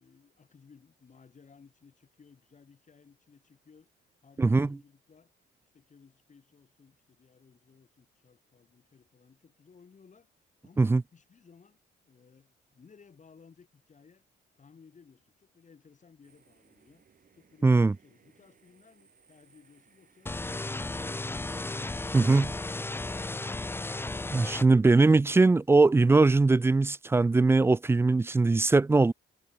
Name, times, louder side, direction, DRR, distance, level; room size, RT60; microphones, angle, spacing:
voice 1, 0.0-3.9 4.2-5.3 5.7-10.3 10.6-11.8 12.0-14.3 14.5-17.0 17.3-20.3, left 5 dB, 40° left, 6.7 m, -59 dB
voice 2, 4.4-4.7 10.8-11.0 17.6-17.9 22.1-22.5 24.3-29.1, right 3 dB, 10° right, 0.3 m, -21 dB
sound 1, 16.2-22.0, right 6 dB, 45° right, 6.6 m, -63 dB
sound 2, 20.3-24.7, left 2 dB, 10° left, 0.7 m, -34 dB
cardioid pair, 90°, 20 cm